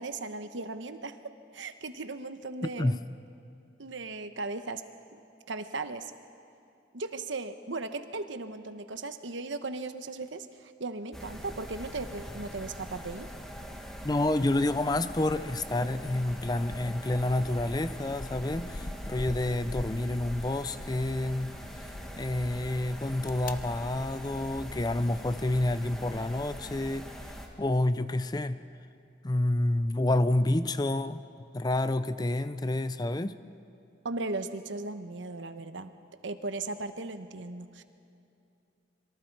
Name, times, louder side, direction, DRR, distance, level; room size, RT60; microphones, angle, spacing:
voice 1, 0.0-3.0 3.8-4.8 5.1-5.2 5.5-6.1 6.9-13.3 34.0-35.9 36.2-37.8, right 3 dB, 75° right, 9 dB, 1.0 m, -37 dB
sound 1, 11.1-27.5, equal, 5° left, 1.7 m, -42 dB
voice 2, 14.0-21.6 22.2-27.1 27.6-28.6 29.2-31.2 31.5-33.3, left 1 dB, 20° left, 13 dB, 0.5 m, -29 dB
sound 2, 17.0-21.1 21.5-22.0 22.9-23.5, left 2 dB, 45° left, 0.8 m, -42 dB
25.5 x 23.0 x 4.7 m, 2.6 s
head